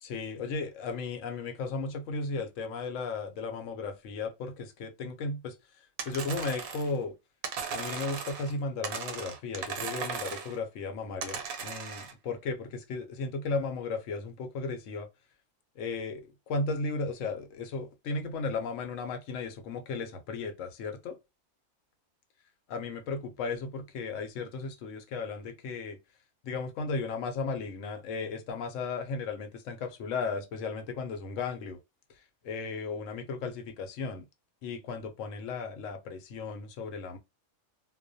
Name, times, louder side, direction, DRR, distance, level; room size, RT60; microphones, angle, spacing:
voice 1, 0.0-7.1 7.7-15.1 15.8-21.2 22.7-26.0 26.4-31.8 32.4-34.3 34.6-37.2, left 4 dB, 70° left, 0.9 m, -35 dB
sound 1, 6.0-7.0 7.4-8.5 8.8-10.6 11.2-12.1, right 6 dB, 90° right, 1.0 m, -37 dB
2.3 x 2.1 x 2.5 m
omnidirectional pair, 1.4 m